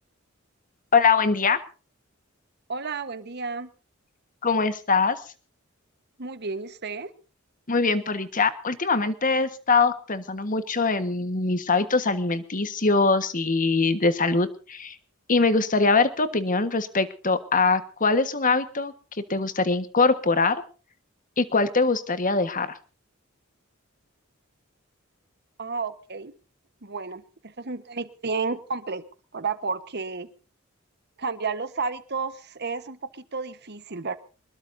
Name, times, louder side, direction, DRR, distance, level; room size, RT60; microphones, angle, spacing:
voice 1, 0.9-1.6 4.4-5.2 7.7-15.0 15.3-18.9 19.3-20.6 21.4-22.8, left 4 dB, 40° left, 11 dB, 1.5 m, -23 dB
voice 2, 2.7-3.7 6.2-7.1 25.6-26.3 26.8-29.0 29.3-30.3 31.2-34.2, right 4 dB, 55° right, 12 dB, 1.3 m, -32 dB
24.0 x 21.0 x 2.7 m, 0.38 s
head